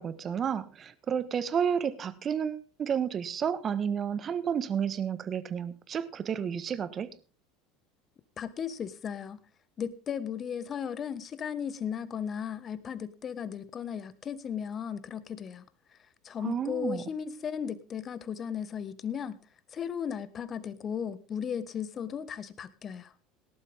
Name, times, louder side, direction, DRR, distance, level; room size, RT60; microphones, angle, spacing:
voice 1, 0.0-7.1 16.4-17.0, right 7 dB, 40° right, 1.4 m, -31 dB
voice 2, 8.4-9.4 9.8-15.6 16.2-19.4 19.7-23.1, left 8 dB, 40° left, 1.5 m, -36 dB
18.0 x 12.0 x 3.6 m
hypercardioid pair, 80°, 0 cm